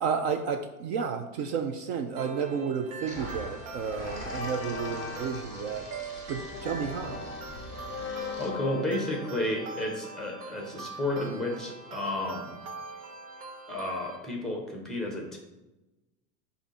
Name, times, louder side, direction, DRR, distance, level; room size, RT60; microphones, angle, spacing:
voice 1, 0.0-5.9 6.3-7.2, right 6 dB, 50° right, 6 dB, 0.6 m, -32 dB
sound 1, 2.2-14.2, right 4 dB, 70° right, 1.2 m, -43 dB
sound 2, 3.1-8.5, equal, 15° right, 1.1 m, -44 dB
sound 3, 3.5-3.6 4.0-10.8, left 5 dB, 30° left, 0.5 m, -40 dB
voice 2, 8.4-12.5 13.7-15.4, left 1 dB, ahead, 1 dB, 0.9 m, -32 dB
7.2 x 2.8 x 5.4 m, 1.0 s
supercardioid pair, 155°, 46 cm